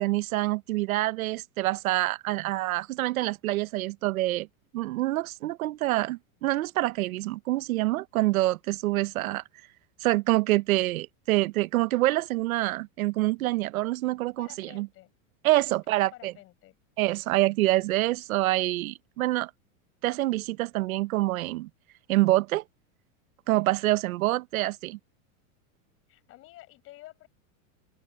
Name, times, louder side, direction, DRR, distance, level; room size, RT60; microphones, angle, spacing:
voice 1, 0.0-4.5 4.7-9.4 10.0-14.9 15.4-16.3 17.0-19.5 20.0-21.7 22.1-22.6 23.5-25.0, right 17 dB, 90° right, 1.1 m, -26 dB
voice 2, 14.4-15.1 15.7-16.8 24.3-24.4 26.1-27.3, left 16 dB, 30° left, 7.1 m, -51 dB
open air
supercardioid pair, 170°, 41 cm